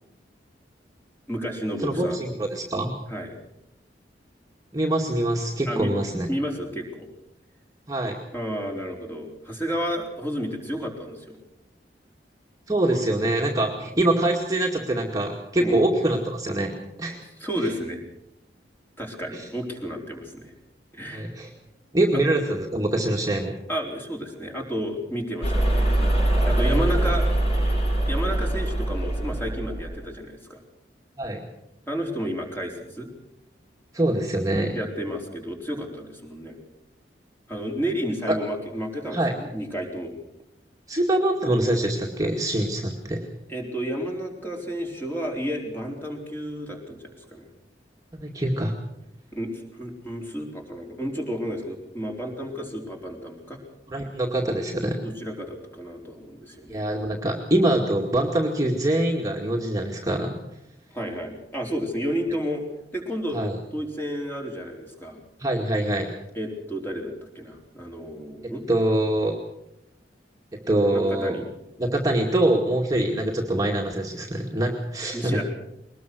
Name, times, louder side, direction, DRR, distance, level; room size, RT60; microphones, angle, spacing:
voice 1, 1.3-2.2 3.1-3.4 5.7-5.9 6.3-7.1 8.3-11.4 13.7-13.8 15.6-15.8 17.4-18.0 19.0-20.5 20.9-21.3 23.7-26.2 26.5-27.3 28.1-30.6 31.9-33.1 34.7-36.5 37.5-40.2 43.5-47.5 49.3-53.6 55.0-56.8 60.9-62.6 62.9-63.4 63.7-65.2 66.3-68.6 70.9-71.4 75.1-75.4, equal, 15° left, 0 dB, 4.2 m, -31 dB
voice 2, 1.8-2.9 4.7-6.3 7.9-8.2 12.7-17.2 19.3-19.5 21.1-21.5 21.9-23.5 26.6-27.1 31.2-31.4 33.9-34.8 38.3-38.4 39.1-39.3 40.9-43.2 48.2-48.7 53.9-55.0 56.7-60.4 63.3-63.6 65.4-66.1 68.7-69.3 70.5-71.4 71.8-75.4, right 1 dB, 20° right, 0 dB, 2.2 m, -24 dB
sound 1, 25.4-29.9, right 1 dB, 40° left, 7.6 m, -23 dB
22.0 x 20.0 x 6.3 m, 0.83 s
head